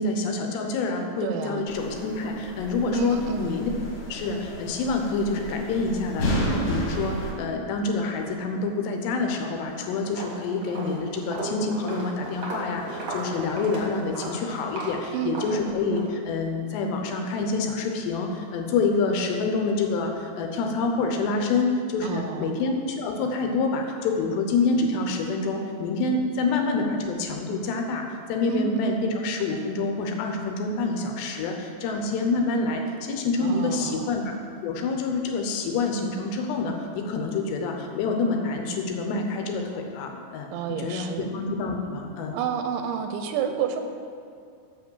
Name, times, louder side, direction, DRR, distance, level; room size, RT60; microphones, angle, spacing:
voice 1, 0.0-3.7 4.1-34.3 34.6-42.4, left 3 dB, 80° left, 3 dB, 2.8 m, -27 dB
voice 2, 1.2-1.7 2.9-3.5 15.1-15.7 22.0-22.5 28.5-29.0 33.4-34.1 40.5-41.3 42.3-43.8, right 8 dB, 85° right, 6 dB, 2.8 m, -30 dB
sound 1, 1.7-7.3, equal, 55° left, 2.8 m, -32 dB
Walk footsteps, 9.5-9.7 10.0-16.1, right 2 dB, 55° right, 1.4 m, -36 dB
8.4 x 6.2 x 6.2 m, 2.3 s
omnidirectional pair, 5.2 m